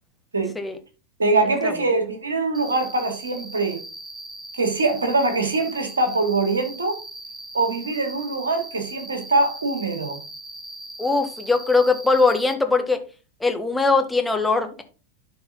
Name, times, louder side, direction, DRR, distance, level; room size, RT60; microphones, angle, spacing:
voice 1, 1.2-3.8 4.5-7.0 7.5-10.2, right 3 dB, 70° right, 2.6 m, -23 dB
Cricket, 2.5-12.5, right 1 dB, 10° right, 1.4 m, -39 dB
voice 2, 11.0-13.0 13.4-14.8, left 3 dB, 5° left, 1.4 m, -21 dB
11.5 x 4.9 x 3.9 m
figure-of-eight pair, 90°, 0 cm